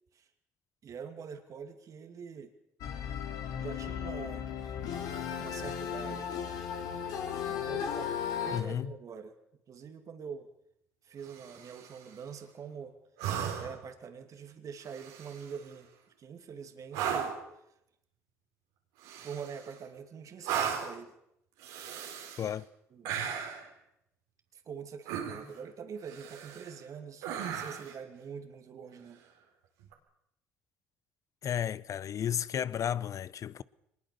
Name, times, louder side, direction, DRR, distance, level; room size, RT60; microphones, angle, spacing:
voice 1, 0.8-2.5 3.6-4.5 5.4-6.3 7.5-9.3 9.7-10.5 11.0-13.0 13.6-15.9 16.2-17.4 19.2-21.1 22.9-23.1 24.5-29.2, right 6 dB, 55° right, 2.7 m, -44 dB
sound 1, 2.8-8.6, left 8 dB, 70° left, 3.3 m, -35 dB
voice 2, 8.5-8.9 22.4-22.7 31.4-33.6, left 9 dB, 55° left, 1.0 m, -33 dB
sound 2, 11.3-12.0 13.2-13.9 14.9-15.6 16.9-17.5 19.0-19.8 20.4-21.0 21.6-22.5 23.0-23.7 25.1-25.6 26.1-26.7 27.2-28.0 29.8-29.9, right 8 dB, 80° right, 4.0 m, -36 dB
24.5 x 20.5 x 6.9 m
hypercardioid pair, 60°, 7 cm